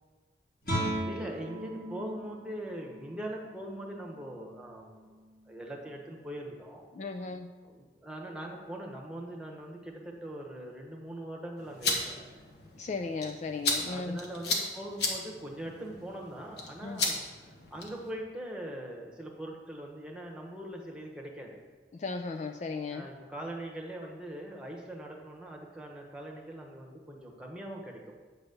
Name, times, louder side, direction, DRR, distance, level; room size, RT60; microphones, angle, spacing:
Guitar, 0.6-6.2, right 1 dB, 55° left, 2.6 m, -39 dB
voice 1, 1.0-5.1 5.5-6.9 7.6-12.4 13.8-17.2 17.7-21.6 22.9-28.1, right 1 dB, 5° right, 0 dB, 1.1 m, -42 dB
voice 2, 6.9-7.5 12.7-14.2 16.8-17.0 21.9-23.1, left 4 dB, 40° left, 6 dB, 0.4 m, -36 dB
sound 1, 11.6-18.1, left 3 dB, 70° left, 1.4 m, -35 dB
8.9 x 4.1 x 6.7 m, 1.4 s
head